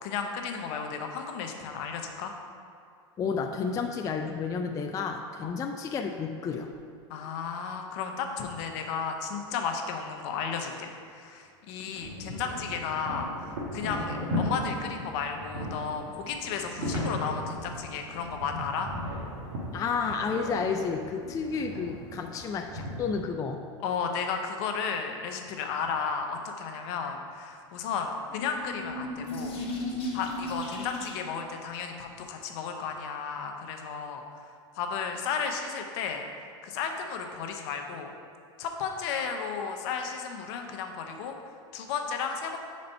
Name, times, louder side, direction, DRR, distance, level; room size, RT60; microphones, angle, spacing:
voice 1, 0.0-2.3 5.4-5.6 7.1-18.9 23.8-29.8 30.1-36.3 36.6-38.1 38.6-42.6, left 6 dB, 60° left, 4 dB, 0.8 m, -34 dB
voice 2, 3.2-6.7 19.7-23.7, left 5 dB, 20° left, 4 dB, 0.3 m, -31 dB
sound 1, 11.9-23.3, left 1 dB, 80° right, 1.4 m, -37 dB
sound 2, 28.2-31.4, left 1 dB, 40° left, 1.4 m, -35 dB
5.3 x 4.2 x 5.3 m, 2.3 s
supercardioid pair, 115°, 15 cm